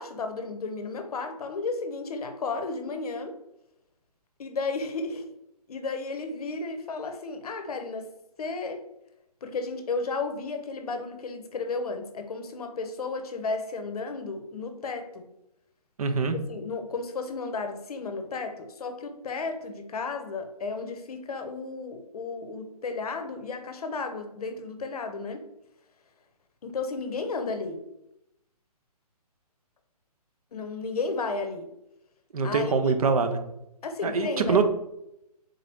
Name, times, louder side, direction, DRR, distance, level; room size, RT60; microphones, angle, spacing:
voice 1, 0.0-3.3 4.4-5.3 5.7-8.1 8.4-8.8 9.4-15.3 16.5-25.4 26.6-27.8 30.5-31.7 32.4-32.9 33.8-34.6, left 4 dB, 65° left, 7 dB, 0.6 m, -33 dB
voice 2, 16.0-16.4 32.3-33.4 34.0-34.6, right 5 dB, 60° right, 8 dB, 0.6 m, -24 dB
3.7 x 2.7 x 3.4 m, 0.82 s
hypercardioid pair, 160°, 21 cm